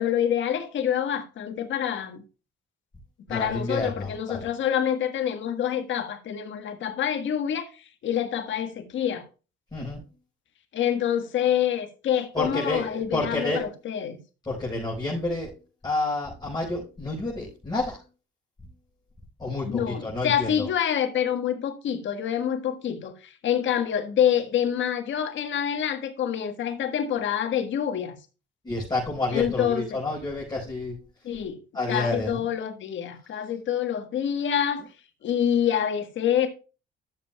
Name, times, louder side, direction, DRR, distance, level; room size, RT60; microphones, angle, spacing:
voice 1, 0.0-2.2 3.3-9.2 10.7-14.2 19.6-28.2 29.3-29.9 31.2-31.6 31.9-34.9 35.2-36.5, left 9 dB, 70° left, 1.6 m, -26 dB
voice 2, 3.3-4.5 9.7-10.0 12.3-13.6 14.5-15.5 15.8-18.0 19.4-20.7 28.6-31.0 31.7-32.5, left 2 dB, 20° left, 4.8 m, -29 dB
13.0 x 7.4 x 2.3 m
cardioid pair, 90°, 20 cm